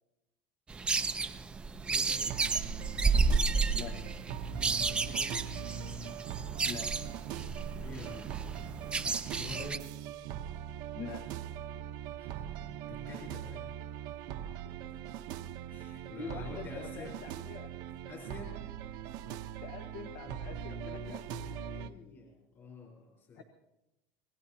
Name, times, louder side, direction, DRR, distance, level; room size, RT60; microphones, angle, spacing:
sound 1, 0.7-9.8, right 4 dB, 10° right, 0.6 m, -32 dB
voice 1, 1.9-2.2 4.8-5.3 7.8-8.7 9.2-9.9 12.2-13.7 14.6-14.7 15.7-17.1 18.1-18.6 20.7-23.4, left 3 dB, 35° left, -2 dB, 3.9 m, -48 dB
sound 2, 2.1-21.9, right 9 dB, 55° right, 0.9 m, -41 dB
voice 2, 10.9-11.3 16.2-17.7 19.6-21.2 23.3-23.4, left 5 dB, 60° left, 5 dB, 1.4 m, -44 dB
26.5 x 19.5 x 2.8 m, 0.94 s
cardioid pair, 165°, 8 cm